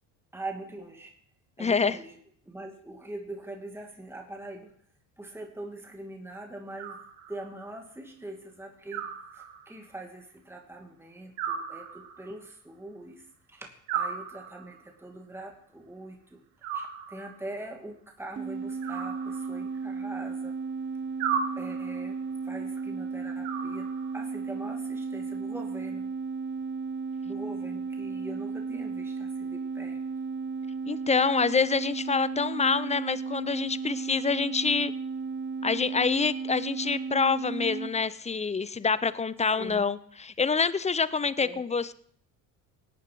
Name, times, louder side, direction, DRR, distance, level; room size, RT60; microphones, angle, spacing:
voice 1, 0.3-1.1 1.6-2.2 2.5-4.7 5.2-20.6 21.6-26.1 27.2-30.0 39.5-39.9 41.4-41.6, right 2 dB, 5° right, 2 dB, 2.4 m, -43 dB
voice 2, 1.6-2.0 30.9-34.9 35.6-41.9, left 5 dB, 15° left, 17 dB, 0.6 m, -26 dB
Animal, 6.8-7.7 8.9-9.9 11.4-12.5 13.9-14.9 16.6-17.5 18.8-19.9 21.2-22.1 23.4-24.3, right 7 dB, 75° right, 2.5 m, -35 dB
sound 1, 18.4-37.9, right 5 dB, 25° right, 0.9 m, -34 dB
17.5 x 9.5 x 4.7 m, 0.62 s
hypercardioid pair, 70°, 43 cm